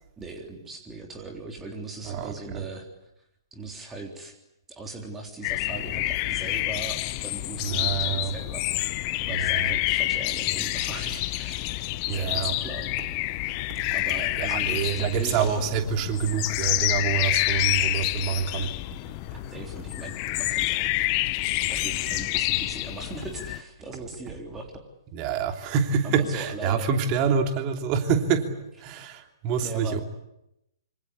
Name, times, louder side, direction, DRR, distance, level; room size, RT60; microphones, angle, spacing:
voice 1, 0.2-2.9 3.5-4.3 4.7-11.8 12.1-12.9 13.7-15.6 19.5-20.9 21.7-24.9 26.0-26.9 29.6-30.0, right 3 dB, 10° right, 3.6 m, -39 dB
voice 2, 2.1-2.6 7.6-8.3 9.4-9.7 12.1-12.5 14.4-18.7 25.1-28.5 28.8-30.0, right 7 dB, 30° right, 2.9 m, -26 dB
sound 1, 5.4-23.6, left 18 dB, 30° left, 1.1 m, -28 dB
26.5 x 25.5 x 8.3 m
figure-of-eight pair, 120°, 2 cm